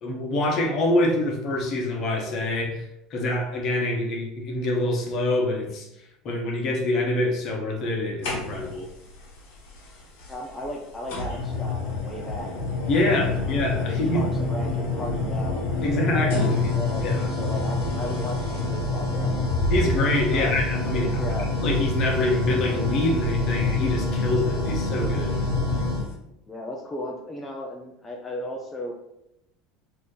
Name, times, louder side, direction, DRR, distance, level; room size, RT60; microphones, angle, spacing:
voice 1, 0.0-2.8 3.1-5.9 6.2-8.9 12.9-14.2 15.8-17.3 19.7-21.2 21.6-25.5, left 1 dB, 50° left, 0 dB, 0.9 m, -25 dB
sound 1, 8.2-8.9 10.2-10.3 11.1-26.1, left 2 dB, 75° left, 1.0 m, -26 dB
voice 2, 10.3-12.5 12.8-13.5 13.9-19.4 20.3-20.6 21.1-21.5 26.5-28.9, left 1 dB, 15° left, -1 dB, 0.5 m, -36 dB
2.8 x 2.6 x 3.6 m, 0.85 s
supercardioid pair, 100°, 0 cm